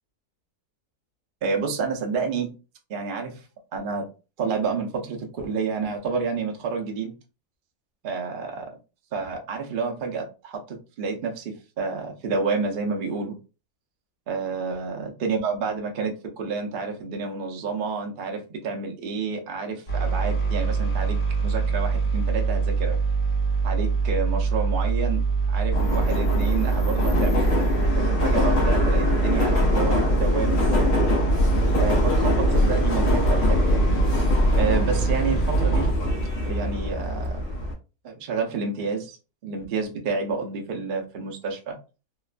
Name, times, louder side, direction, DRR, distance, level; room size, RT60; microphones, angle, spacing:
voice 1, 1.4-2.6 2.9-3.5 3.7-4.1 4.4-7.1 8.0-8.7 9.1-13.4 14.3-23.0 23.6-27.5 28.0-30.9 31.8-33.8 34.6-35.9 36.5-37.4 38.0-39.2 39.4-41.8, right 4 dB, 85° right, 3 dB, 0.4 m, -29 dB
sound 1, 19.9-35.9, right 5 dB, 35° left, 1.2 m, -24 dB
Subway metro underground, 25.7-37.7, left 2 dB, 55° left, 0.8 m, -23 dB
3.0 x 2.1 x 2.4 m, 0.32 s
omnidirectional pair, 1.7 m